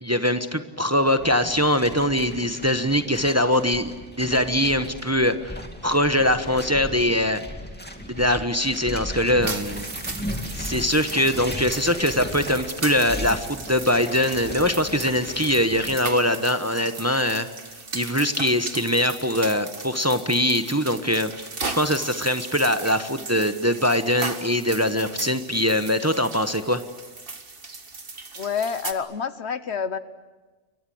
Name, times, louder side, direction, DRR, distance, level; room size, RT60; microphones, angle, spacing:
voice 1, 0.0-7.4 8.1-9.9 10.5-17.5 17.9-21.5 21.8-26.8, left 1 dB, 15° right, 9 dB, 1.1 m, -22 dB
sound 1, 1.2-16.0, equal, 10° left, 2.4 m, -36 dB
sound 2, 9.4-28.9, right 3 dB, 50° right, 2.0 m, -37 dB
voice 2, 28.3-30.0, left 6 dB, 65° left, 13 dB, 1.3 m, -28 dB
29.0 x 23.0 x 7.8 m, 1.3 s
omnidirectional pair, 1.2 m